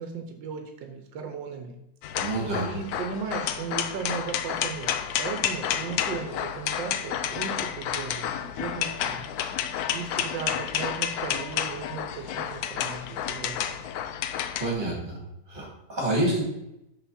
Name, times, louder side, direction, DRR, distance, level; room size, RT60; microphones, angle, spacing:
voice 1, 0.0-1.7 2.6-4.9 5.2-9.3 9.5-13.8, right 6 dB, 90° right, 5 dB, 1.5 m, -36 dB
sound 1, 2.0-14.7, left 9 dB, 70° left, 1.0 m, -30 dB
voice 2, 2.2-2.7 14.6-15.2 15.5-16.4, right 2 dB, 25° right, -3 dB, 3.1 m, -28 dB
6.6 x 5.8 x 4.1 m, 0.86 s
omnidirectional pair, 1.9 m